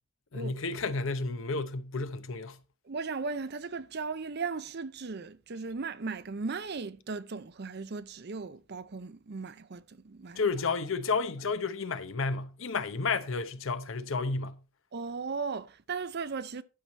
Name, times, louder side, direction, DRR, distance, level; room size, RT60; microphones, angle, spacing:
voice 1, 0.3-2.6 10.3-14.6, left 4 dB, 65° left, 0.8 m, -31 dB
voice 2, 2.8-10.4 14.9-16.6, right 4 dB, 50° right, 0.6 m, -37 dB
11.0 x 6.1 x 4.1 m
head